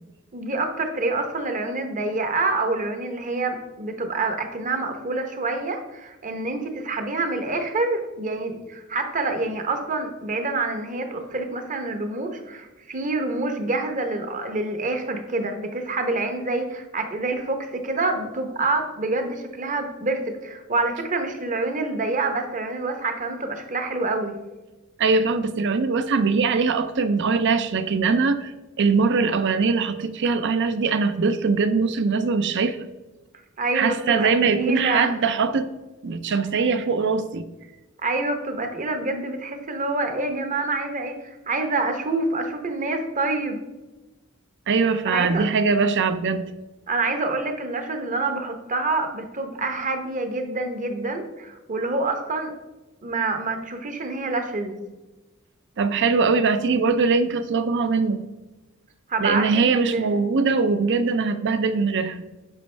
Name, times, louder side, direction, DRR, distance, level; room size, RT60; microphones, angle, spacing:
voice 1, 0.3-24.3 33.6-35.1 38.0-43.6 45.0-45.5 46.9-52.5 53.0-54.8 59.1-60.0, right 3 dB, 35° right, 6 dB, 0.9 m, -27 dB
voice 2, 25.0-28.5 28.8-32.8 33.7-35.7 36.0-37.5 44.7-46.5 55.8-58.3 59.2-62.2, right 4 dB, 55° right, 11 dB, 0.5 m, -22 dB
8.3 x 6.2 x 3.3 m, 1.1 s
head